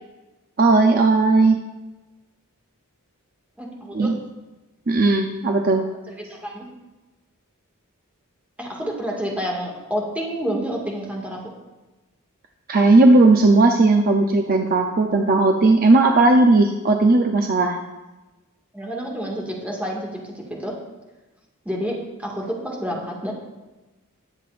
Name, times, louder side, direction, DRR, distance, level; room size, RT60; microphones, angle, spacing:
voice 1, 0.6-1.6 3.9-4.2 4.9-5.8 12.7-17.8, right 2 dB, 40° right, 4 dB, 0.6 m, -16 dB
voice 2, 3.6-4.2 6.1-6.7 8.6-11.5 18.7-20.7 21.7-23.3, equal, 5° right, -2 dB, 2.0 m, -29 dB
19.5 x 7.5 x 2.6 m, 1.1 s
head